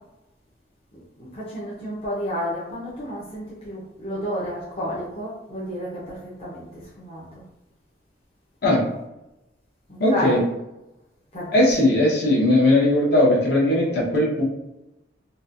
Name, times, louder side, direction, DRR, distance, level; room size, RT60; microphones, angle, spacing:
voice 1, 1.2-5.9 6.4-6.7 7.0-7.4 9.9-10.4 11.3-11.5, equal, 30° left, -7 dB, 0.6 m, -31 dB
voice 2, 10.0-10.4 11.5-14.4, left 1 dB, 55° left, -4 dB, 1.0 m, -18 dB
4.1 x 2.2 x 2.5 m, 0.93 s
head